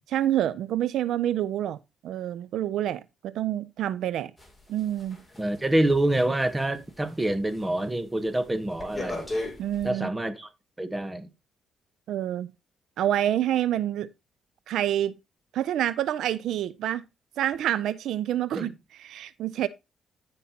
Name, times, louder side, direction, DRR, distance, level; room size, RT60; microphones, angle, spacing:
voice 1, 0.1-1.8 2.0-4.3 4.7-5.2 9.6-10.1 12.1-12.5 13.0-14.1 14.7-15.2 15.5-17.0 17.4-19.7, right 12 dB, 80° right, 0.4 m, -27 dB
sound 1, 4.4-7.2 7.5-7.8 8.2-9.9, left 2 dB, 10° left, 2.8 m, -37 dB
voice 2, 5.4-9.3 9.8-10.5 10.8-11.3 18.5-18.7, right 1 dB, 15° right, 1.0 m, -26 dB
13.0 x 5.4 x 2.8 m
cardioid pair, 90°, 0 cm